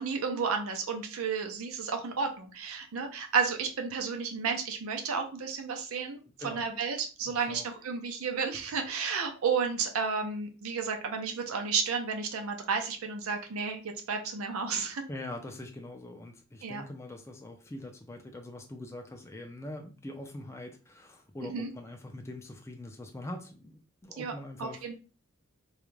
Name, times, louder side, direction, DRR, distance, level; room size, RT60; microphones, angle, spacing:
voice 1, 0.0-13.8 14.1-15.0 16.6-16.8 21.5-21.7 24.2-24.3 24.6-25.0, right 5 dB, 90° right, 5 dB, 0.5 m, -32 dB
voice 2, 7.2-7.6 15.1-25.0, left 1 dB, 15° left, 3 dB, 0.3 m, -43 dB
2.3 x 2.1 x 3.1 m, 0.35 s
head